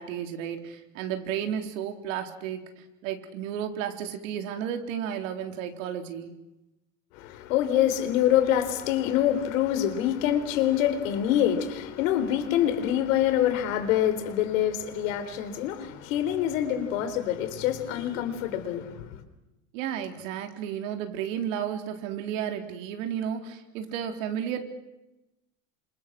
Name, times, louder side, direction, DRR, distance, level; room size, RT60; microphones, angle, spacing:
voice 1, 0.0-2.6 3.0-6.3 19.7-24.6, right 9 dB, 80° right, 4.0 m, -32 dB
voice 2, 7.2-19.1, left 11 dB, 85° left, 4.0 m, -25 dB
29.5 x 26.5 x 6.3 m
cardioid pair, 150°, 38 cm